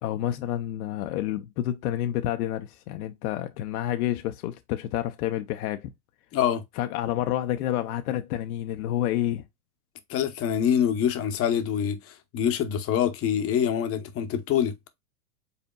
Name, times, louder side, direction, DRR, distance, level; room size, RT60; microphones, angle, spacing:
voice 1, 0.0-5.9 6.8-9.4, left 12 dB, 60° left, 0.7 m, -29 dB
voice 2, 6.3-6.6 10.1-14.7, left 9 dB, 30° left, 0.8 m, -25 dB
5.4 x 4.2 x 2.2 m
hypercardioid pair, 120°, 49 cm